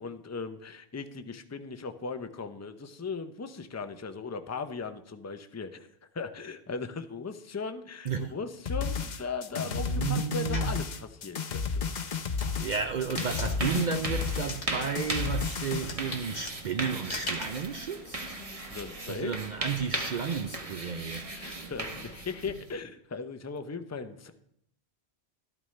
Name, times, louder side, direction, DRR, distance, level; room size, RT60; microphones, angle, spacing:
voice 1, 0.0-5.9 6.1-11.9 18.7-19.3 21.3-24.3, left 4 dB, 20° left, 0.5 m, -38 dB
sound 1, 8.7-16.0, left 5 dB, 45° left, 0.8 m, -32 dB
voice 2, 9.7-10.8 12.6-18.4 19.1-21.2, right 6 dB, 55° right, 0.6 m, -32 dB
sound 2, 10.5-10.8 11.4-18.8, left 3 dB, 70° left, 1.8 m, -43 dB
sound 3, 12.5-22.7, right 2 dB, 35° right, 1.1 m, -38 dB
12.5 x 12.5 x 3.2 m
omnidirectional pair, 1.1 m